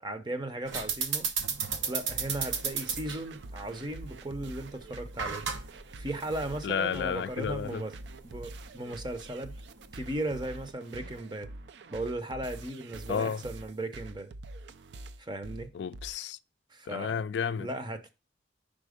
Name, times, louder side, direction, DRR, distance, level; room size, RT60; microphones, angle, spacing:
voice 1, 0.0-1.3 1.9-5.4 5.9-8.0 8.2-9.5 9.9-11.5 11.9-14.3 15.2-15.7 16.7-17.2 17.6-18.1, right 1 dB, 25° right, 0.6 m, -36 dB
sound 1, 0.7-10.7, right 6 dB, 85° right, 0.9 m, -36 dB
sound 2, 1.7-16.1, right 2 dB, 70° right, 0.4 m, -45 dB
voice 2, 6.6-7.8 13.1-13.4 15.7-16.4 16.9-17.7, left 7 dB, 70° left, 0.3 m, -31 dB
5.1 x 4.4 x 5.0 m
head